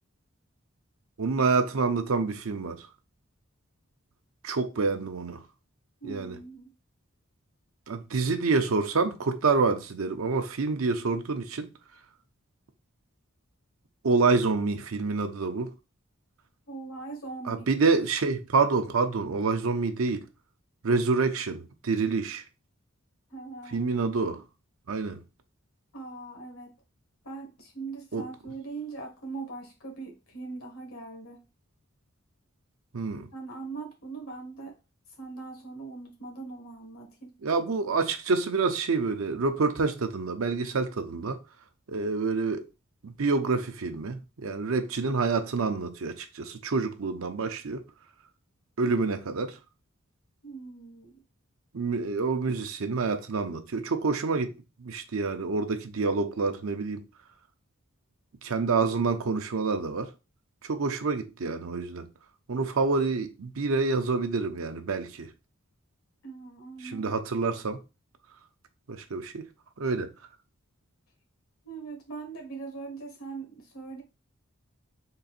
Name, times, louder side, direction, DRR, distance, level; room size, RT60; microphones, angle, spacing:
voice 1, 1.2-2.9 4.4-5.4 6.0-6.4 7.9-11.7 14.0-15.7 17.5-20.3 20.8-22.4 23.7-24.4 24.9-25.2 28.1-28.2 32.9-33.3 37.4-41.4 41.9-42.6 43.0-47.8 48.8-49.6 51.7-54.5 54.8-57.0 58.4-60.1 60.6-62.1 62.5-65.3 66.8-67.8 68.9-69.5 69.8-70.1, right 4 dB, 80° right, 0.6 m, -27 dB
voice 2, 6.0-6.7 16.7-17.7 23.3-23.9 25.9-26.7 27.2-31.4 33.3-34.8 35.2-37.3 50.4-51.2 66.2-67.1 71.6-74.0, right 4 dB, 85° left, 1.5 m, -41 dB
3.9 x 2.5 x 4.0 m
head